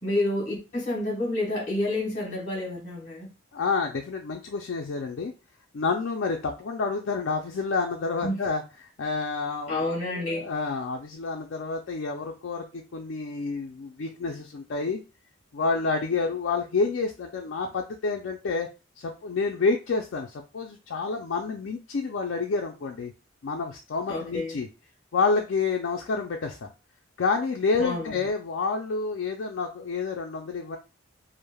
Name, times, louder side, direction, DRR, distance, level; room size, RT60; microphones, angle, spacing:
voice 1, 0.0-3.3 8.2-8.4 9.7-10.5 24.1-24.6 27.8-28.1, left 1 dB, 35° left, 1.2 m, -29 dB
voice 2, 3.5-5.3 5.7-15.0 15.5-18.7 19.0-23.1 23.4-24.7 25.1-26.7 27.2-30.8, left 4 dB, 65° left, 0.4 m, -29 dB
3.2 x 2.0 x 2.2 m
head